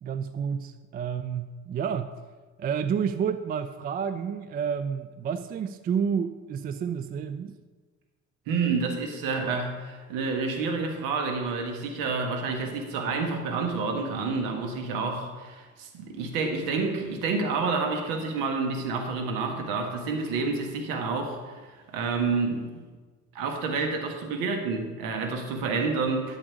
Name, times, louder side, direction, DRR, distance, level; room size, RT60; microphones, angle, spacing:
voice 1, 0.0-2.1 2.6-7.6, right 7 dB, 25° right, 11 dB, 0.4 m, -30 dB
voice 2, 8.5-22.7 23.3-26.4, right 4 dB, 60° right, 4 dB, 1.6 m, -29 dB
12.0 x 6.6 x 4.9 m, 1.4 s
figure-of-eight pair, 50°, 38 cm